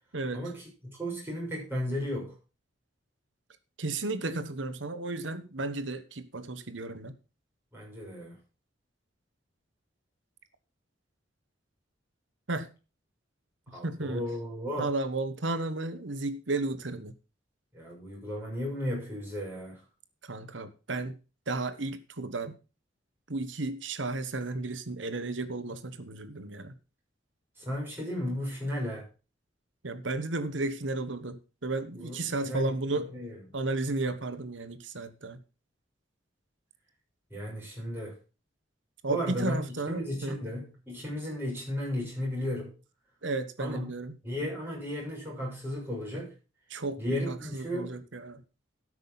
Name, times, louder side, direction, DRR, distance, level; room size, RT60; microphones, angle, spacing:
voice 1, 0.1-0.4 3.8-7.1 12.5-12.7 13.7-14.2 14.8-17.1 20.2-21.2 21.5-22.6 23.3-26.7 29.8-33.1 33.5-35.4 39.0-40.4 43.2-44.2 46.7-48.4, right 2 dB, 80° right, 1.2 m, -33 dB
voice 2, 1.0-2.3 7.7-8.4 13.7-14.9 17.7-19.8 27.6-29.0 31.9-33.4 37.3-38.1 39.1-42.7 43.6-43.9 44.2-46.3 47.0-48.0, left 1 dB, 10° right, 6.5 m, -34 dB
12.5 x 6.2 x 5.7 m
head